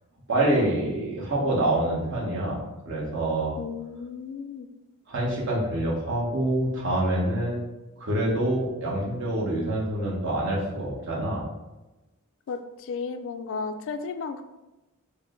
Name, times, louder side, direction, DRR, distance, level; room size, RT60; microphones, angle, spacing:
voice 1, 0.3-2.6 2.8-3.5 5.1-7.6 8.0-11.4, right 1 dB, 55° right, -5 dB, 1.1 m, -26 dB
voice 2, 3.6-4.7 12.5-14.4, left 5 dB, 60° left, 9 dB, 0.3 m, -34 dB
4.6 x 2.1 x 3.7 m, 1.0 s
head